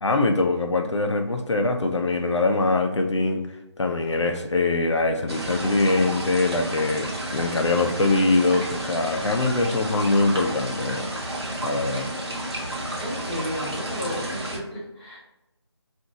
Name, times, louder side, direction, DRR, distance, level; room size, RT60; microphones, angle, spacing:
voice 1, 0.0-3.5 3.8-11.1 11.6-12.1, left 2 dB, 75° left, 4 dB, 0.5 m, -23 dB
sound 1, 5.3-14.6, right 1 dB, 60° right, 0.9 m, -31 dB
voice 2, 13.0-15.2, equal, 10° left, -11 dB, 0.7 m, -33 dB
2.9 x 2.6 x 3.5 m, 0.92 s
figure-of-eight pair, 165°, 15 cm